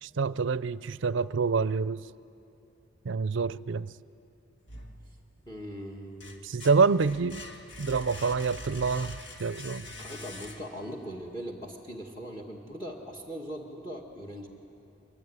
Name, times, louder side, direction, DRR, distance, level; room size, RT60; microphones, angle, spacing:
voice 1, 0.0-2.1 3.0-3.9 6.4-7.5 7.8-9.9, right 4 dB, 65° right, 17 dB, 0.5 m, -27 dB
sound 1, 4.7-5.5 5.9-11.0, left 1 dB, 55° left, 2.2 m, -44 dB
voice 2, 5.5-6.4 10.0-14.5, equal, 20° left, 1 dB, 1.8 m, -40 dB
23.5 x 23.5 x 9.7 m, 2.9 s
head